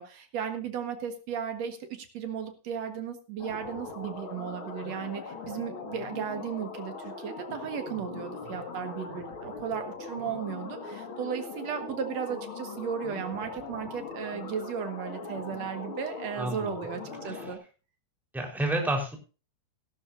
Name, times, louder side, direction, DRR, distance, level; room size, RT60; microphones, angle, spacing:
voice 1, 0.0-17.6, right 7 dB, 55° right, 7 dB, 2.1 m, -35 dB
sound 1, 3.4-17.6, left 4 dB, 45° left, 1.8 m, -40 dB
voice 2, 16.3-16.7 17.2-17.5 18.3-19.2, right 1 dB, ahead, 1 dB, 3.4 m, -30 dB
17.0 x 12.0 x 2.6 m, 0.33 s
omnidirectional pair, 4.8 m